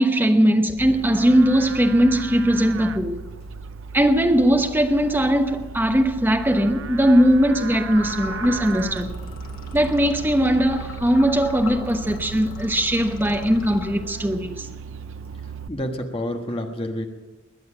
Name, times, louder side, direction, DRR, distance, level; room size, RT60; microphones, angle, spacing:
voice 1, 0.0-3.2 3.9-9.1 9.7-14.7, equal, 10° right, 1.0 m, -19 dB
Livestock farm animals working animals, 0.8-15.7, right 6 dB, 65° right, 0.6 m, -36 dB
sound 1, 7.9-14.4, left 3 dB, 75° left, 2.3 m, -39 dB
voice 2, 15.7-17.1, left 1 dB, 25° left, 1.4 m, -28 dB
21.5 x 9.5 x 6.3 m
head